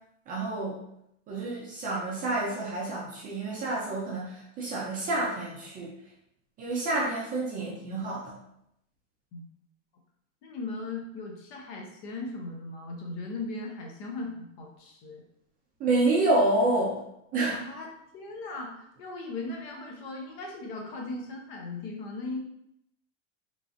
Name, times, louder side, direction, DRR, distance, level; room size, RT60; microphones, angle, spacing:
voice 1, 0.3-0.8 1.3-5.9 6.6-8.3 15.8-17.0 17.3-17.6, right 2 dB, 25° right, -4 dB, 0.4 m, -28 dB
voice 2, 7.5-8.0 9.3-9.4 10.4-15.2 17.5-17.9 18.1-22.4, left 3 dB, 50° left, 0 dB, 0.8 m, -38 dB
3.1 x 2.4 x 2.4 m, 0.78 s
supercardioid pair, 125°, 40 cm